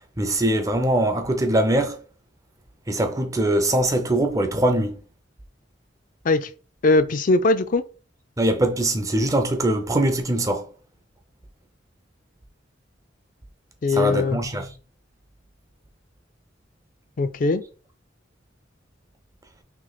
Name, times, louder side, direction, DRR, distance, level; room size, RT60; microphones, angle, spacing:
voice 1, 0.2-2.0 2.9-4.9 8.4-10.6 13.9-14.7, right 1 dB, 20° right, 0.5 m, -22 dB
voice 2, 6.8-7.8 13.8-14.4 17.2-17.6, left 3 dB, 45° left, 0.4 m, -20 dB
3.1 x 2.8 x 4.0 m
head